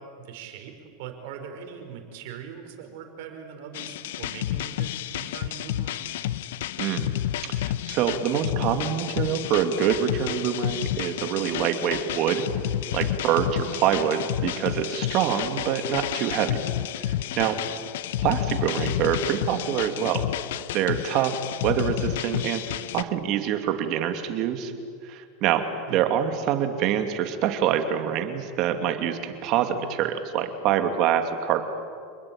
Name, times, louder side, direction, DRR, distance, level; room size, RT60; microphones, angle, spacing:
voice 1, 0.0-6.1 17.3-17.6 25.8-26.0, right 7 dB, 70° right, 4 dB, 5.1 m, -41 dB
sound 1, 3.7-23.0, left 12 dB, 80° left, 0.8 m, -30 dB
voice 2, 6.8-7.1 7.5-12.4 12.9-16.6 17.0-17.5 18.2-20.2 20.7-21.4 21.6-24.7 25.0-31.6, right 9 dB, 50° right, 6 dB, 2.6 m, -25 dB
28.0 x 20.5 x 8.9 m, 2.2 s
supercardioid pair, 130°, 0 cm